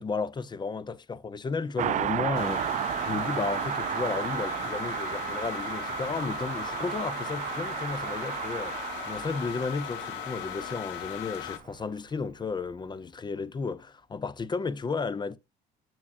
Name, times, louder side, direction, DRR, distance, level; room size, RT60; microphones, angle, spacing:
voice 1, 0.0-2.6 3.1-8.7 9.1-15.4, left 4 dB, 25° left, 0.5 m, -33 dB
Car passing by, 1.8-11.7 12.0-12.1, right 11 dB, 40° right, 0.4 m, -33 dB
sound 1, 2.3-11.6, left 11 dB, 85° left, 0.9 m, -38 dB
7.3 x 7.2 x 2.5 m
supercardioid pair, 80°, 19 cm